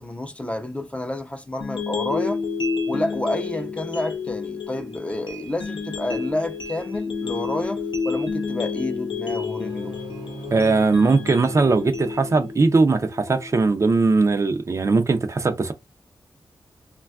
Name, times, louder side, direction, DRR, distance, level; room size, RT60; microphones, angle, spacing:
voice 1, 0.0-2.4 2.9-9.9, left 1 dB, 15° left, 0.5 m, -29 dB
sound 1, 1.6-13.6, left 5 dB, 80° left, 0.7 m, -30 dB
sound 2, 9.2-12.5, right 2 dB, 90° right, 0.8 m, -40 dB
voice 2, 10.5-15.7, right 3 dB, 40° right, 0.4 m, -19 dB
3.2 x 2.2 x 2.3 m
wide cardioid pair, 115°, 8 cm